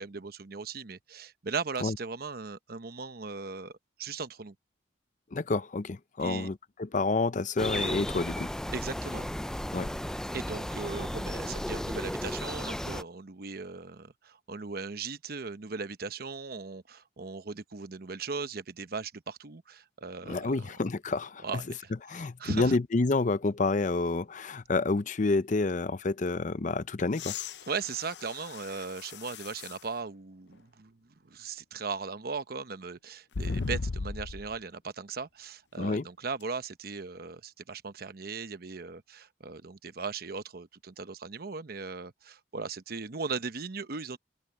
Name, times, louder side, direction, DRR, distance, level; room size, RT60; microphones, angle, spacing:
voice 1, 0.0-3.7 4.0-4.5 6.2-6.5 8.7-9.3 10.3-20.7 21.4-21.9 22.2-22.8 27.7-31.0 31.2-44.2, right 4 dB, 60° right, 0.9 m, -38 dB
voice 2, 5.3-8.5 9.7-9.9 20.3-21.4 22.1-27.3 35.8-36.0, left 3 dB, 45° left, 0.6 m, -29 dB
sound 1, 7.6-13.0, equal, 5° left, 0.4 m, -34 dB
sound 2, 27.1-29.9 30.5-30.6 33.3-34.6 36.4-36.5, left 4 dB, 85° left, 0.7 m, -37 dB
open air
head